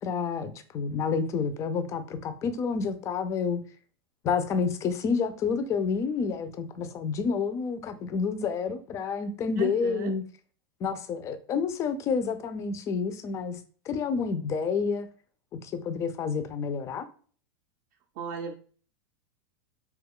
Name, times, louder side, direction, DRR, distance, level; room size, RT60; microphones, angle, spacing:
voice 1, 0.0-3.6 4.2-10.2 10.8-13.6 13.9-15.1 15.6-17.1, left 5 dB, 20° left, 0.3 m, -29 dB
voice 2, 9.6-10.1 18.2-18.5, right 7 dB, 50° right, 0.4 m, -35 dB
2.9 x 2.2 x 3.5 m
supercardioid pair, 145°, 13 cm